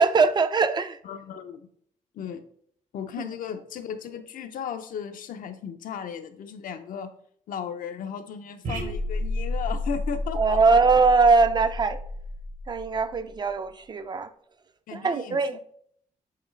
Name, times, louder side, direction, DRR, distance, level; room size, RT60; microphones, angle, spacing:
voice 1, 0.0-1.0 3.2-3.3 10.3-12.0 12.7-14.3 14.9-15.6, right 4 dB, 30° right, 0.4 m, -21 dB
voice 2, 1.0-1.7 2.1-2.4 2.9-7.1 7.5-10.8 14.9-15.6, left 7 dB, 75° left, 0.6 m, -36 dB
sound 1, 8.6-13.3, left 1 dB, 65° right, 1.2 m, -31 dB
7.7 x 4.0 x 3.2 m
cardioid pair, 135°, 14 cm